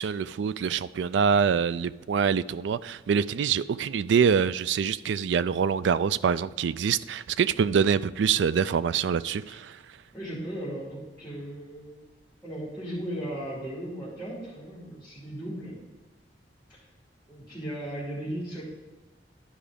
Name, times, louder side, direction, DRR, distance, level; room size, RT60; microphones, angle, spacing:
voice 1, 0.0-9.8, right 6 dB, 80° right, 0.3 m, -25 dB
voice 2, 10.1-12.1 12.4-15.8 16.7-16.8 17.3-18.6, right 1 dB, 10° left, 2.9 m, -36 dB
11.5 x 4.9 x 5.1 m
head